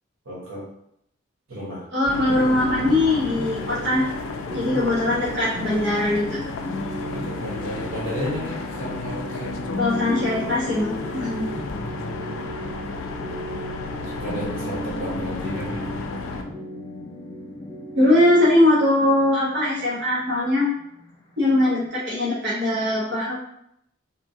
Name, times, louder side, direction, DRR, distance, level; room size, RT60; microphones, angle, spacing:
voice 1, 0.2-0.7 1.5-1.8 4.6-4.8 7.0-9.7 11.7-12.4 14.0-15.9, equal, 85° right, -6 dB, 1.1 m, -33 dB
voice 2, 1.9-4.1 4.5-6.4 9.8-11.4 17.9-20.7 21.4-23.4, left 1 dB, 55° right, -9 dB, 0.9 m, -21 dB
sound 1, 2.1-16.4, left 4 dB, 85° left, 0.3 m, -33 dB
sound 2, 2.3-21.9, equal, 20° left, 0.5 m, -35 dB
2.9 x 2.3 x 2.6 m, 0.75 s
head